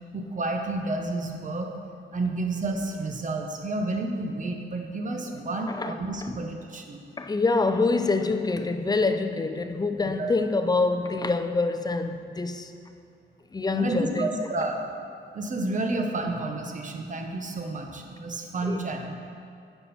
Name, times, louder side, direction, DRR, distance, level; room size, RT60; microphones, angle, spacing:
voice 1, 0.1-1.7 2.1-7.0 10.1-10.3 13.7-14.8 15.3-19.1, right 2 dB, 40° right, 3 dB, 0.9 m, -30 dB
voice 2, 7.2-12.7 13.5-14.3 18.6-18.8, left 3 dB, 20° left, 8 dB, 0.5 m, -26 dB
9.9 x 5.8 x 4.2 m, 2.6 s
cardioid pair, 100°, 20 cm